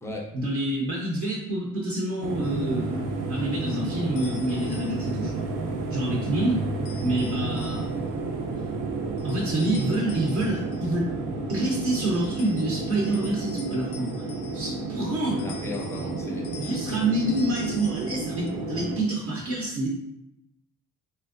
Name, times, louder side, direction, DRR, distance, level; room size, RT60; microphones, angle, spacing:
voice 1, 0.3-5.5 5.9-6.6 7.0-7.9 9.2-11.1 11.5-14.2 14.5-15.5 16.6-19.9, right 1 dB, 50° right, -2 dB, 0.6 m, -27 dB
sound 1, 2.2-19.0, right 3 dB, 85° right, 0.6 m, -31 dB
sound 2, 2.4-2.6 4.2-5.2 6.8-8.1 9.2-11.0 12.0-14.9 15.4-18.5, left 5 dB, 75° left, 0.5 m, -47 dB
voice 2, 15.4-16.5, left 2 dB, 10° left, -1 dB, 0.4 m, -36 dB
3.3 x 2.9 x 2.5 m, 0.83 s
cardioid pair, 170°, 32 cm